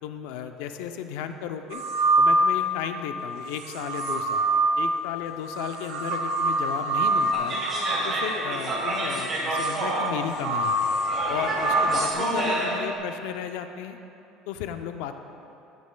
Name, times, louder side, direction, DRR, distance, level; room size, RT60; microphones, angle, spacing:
voice 1, 0.0-1.8 2.2-4.5 4.8-7.6 8.0-10.8 11.3-14.0 14.5-15.2, left 8 dB, 75° left, 7 dB, 0.5 m, -34 dB
sound 1, 1.7-2.9 3.5-12.1, right 2 dB, 90° right, 1.5 m, -26 dB
sound 2, 7.3-12.9, right 1 dB, 25° right, 2.2 m, -29 dB
15.0 x 9.4 x 2.2 m, 2.8 s
cardioid pair, 175°, 0 cm